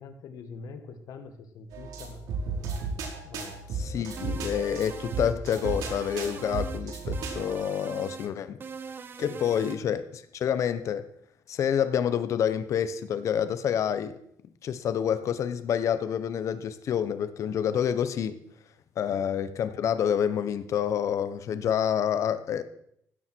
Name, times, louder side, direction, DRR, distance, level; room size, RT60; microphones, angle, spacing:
voice 1, 0.0-2.7 3.2-3.6 8.2-8.4 9.2-9.4 19.1-19.2, left 4 dB, 70° left, 7 dB, 2.0 m, -45 dB
sound 1, 1.7-7.4, right 3 dB, 85° right, 4.3 m, -34 dB
voice 2, 3.7-8.6 9.2-11.0 11.5-14.1 14.6-18.4 19.0-22.6, left 8 dB, 55° left, 12 dB, 1.1 m, -28 dB
sound 2, 4.2-5.4 5.6-6.8 7.1-8.3 8.6-9.8, right 5 dB, 35° right, 1.2 m, -41 dB
16.0 x 13.0 x 4.7 m, 0.71 s
cardioid pair, 140°, 6 cm